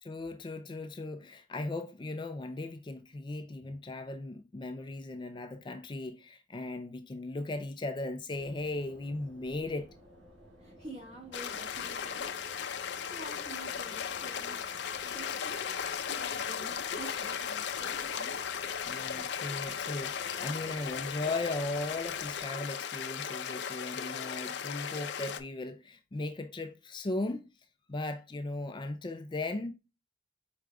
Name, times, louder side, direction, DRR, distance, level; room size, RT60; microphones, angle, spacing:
voice 1, 0.0-9.9 18.9-27.5 27.9-29.7, left 2 dB, 25° left, 0.4 m, -37 dB
sound 1, 8.3-22.4, equal, 80° right, 2.2 m, -56 dB
voice 2, 10.6-12.4 12.6-14.6 15.0-18.4, right 1 dB, 35° right, 2.1 m, -49 dB
sound 2, 11.3-25.4, left 7 dB, 80° left, 0.6 m, -36 dB
4.9 x 4.8 x 2.3 m
head